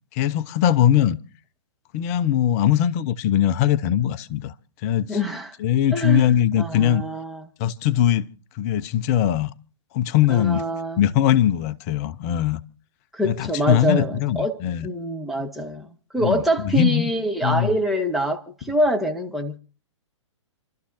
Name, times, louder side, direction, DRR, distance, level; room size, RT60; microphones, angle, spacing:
voice 1, 0.1-1.2 1.9-4.5 4.8-5.2 5.6-7.0 7.6-8.3 8.5-9.5 9.9-10.6 11.0-12.6 13.2-14.9 16.2-17.1 17.4-17.7, left 10 dB, 30° left, 0.7 m, -21 dB
voice 2, 5.1-5.6 5.9-7.5 10.3-11.0 13.1-15.9 16.1-19.6, equal, ahead, 1.2 m, -25 dB
29.0 x 12.5 x 2.7 m
figure-of-eight pair, 115°, 16 cm